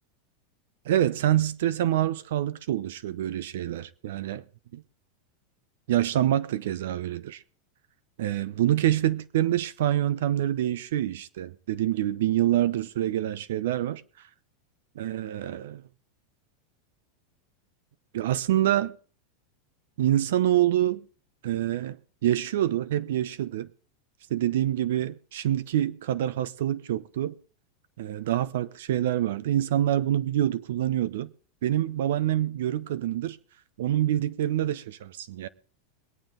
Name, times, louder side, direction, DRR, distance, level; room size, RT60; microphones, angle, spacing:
voice 1, 0.9-4.4 4.7-4.8 5.9-7.4 8.2-14.0 15.0-15.8 18.1-19.0 20.0-21.0 21.4-22.0 22.2-23.7 24.3-27.4 28.0-31.3 31.6-33.4 33.8-35.5, right 12 dB, 80° right, 0.8 m, -26 dB
22.0 x 9.0 x 3.9 m
supercardioid pair, 135°, 0 cm